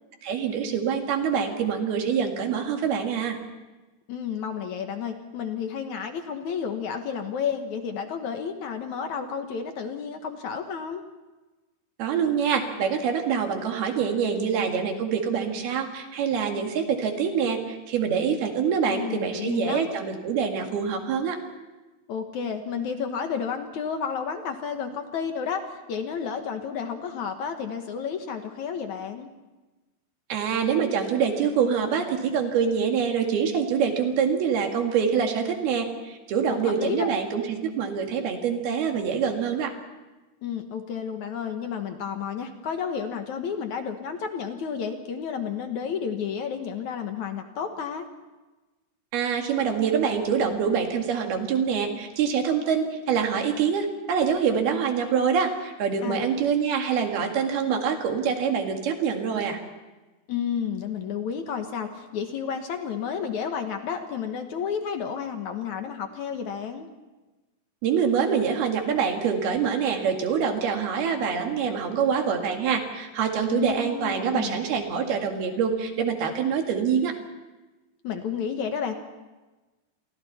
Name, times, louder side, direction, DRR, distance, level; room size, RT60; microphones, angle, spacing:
voice 1, 0.2-3.4 12.0-21.4 30.3-39.7 49.1-59.6 67.8-77.1, right 6 dB, 80° right, 3 dB, 4.2 m, -25 dB
voice 2, 4.1-11.0 18.9-19.8 22.1-29.3 36.5-37.1 40.4-48.1 56.0-56.3 60.3-66.9 73.5-74.6 78.0-78.9, left 7 dB, 60° left, 6 dB, 2.3 m, -31 dB
29.0 x 24.0 x 4.3 m, 1.2 s
omnidirectional pair, 4.3 m